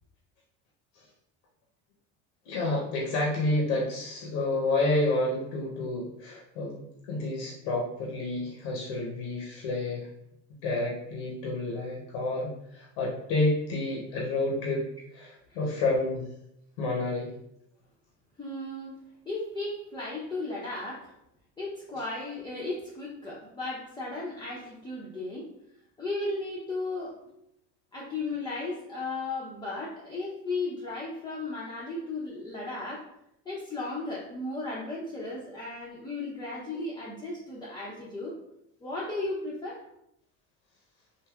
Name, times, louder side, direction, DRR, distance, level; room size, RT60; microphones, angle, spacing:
voice 1, 2.5-10.1 10.6-14.8 15.1-16.3 16.8-17.3, left 2 dB, 90° left, -2 dB, 0.7 m, -29 dB
voice 2, 18.4-18.9 19.3-21.1 21.6-25.5 26.0-27.1 27.9-33.1 33.5-38.3 38.8-39.8, left 2 dB, 15° left, -7 dB, 0.5 m, -35 dB
3.3 x 2.6 x 2.3 m, 0.79 s
cardioid pair, 115°, 34 cm